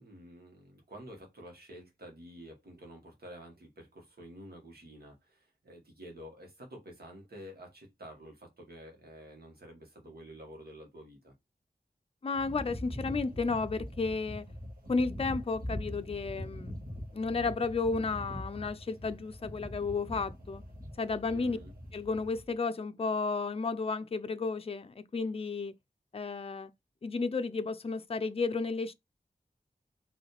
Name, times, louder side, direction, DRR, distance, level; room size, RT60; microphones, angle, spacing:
voice 1, 0.0-11.3 21.3-21.7, equal, 85° right, 1.9 m, -50 dB
voice 2, 12.2-14.5 14.9-16.8 17.1-20.6 21.0-21.6 21.9-25.7 26.1-26.7 27.0-28.9, left 4 dB, 40° left, 0.5 m, -32 dB
sound 1, 12.3-22.5, equal, 65° right, 1.8 m, -43 dB
4.7 x 3.2 x 3.4 m
wide cardioid pair, 80°, 16 cm